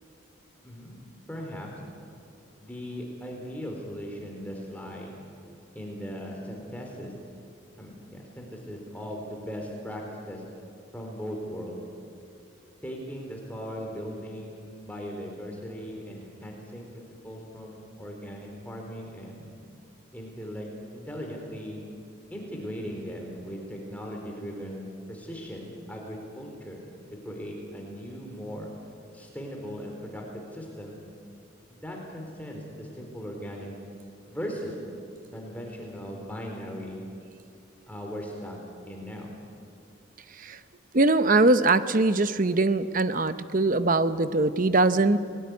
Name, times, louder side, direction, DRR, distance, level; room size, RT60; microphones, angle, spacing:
voice 1, 1.3-1.7 2.6-5.2 5.7-7.1 7.8-10.4 10.9-11.8 12.8-19.5 20.1-21.8 22.3-26.8 27.2-28.7 29.1-31.0 31.7-33.7 34.3-34.8 35.3-37.0 37.9-38.6 38.9-39.3, equal, 10° left, 0 dB, 4.1 m, -38 dB
voice 2, 40.9-45.2, right 2 dB, 40° right, 12 dB, 0.8 m, -22 dB
29.5 x 20.0 x 9.7 m, 2.4 s
head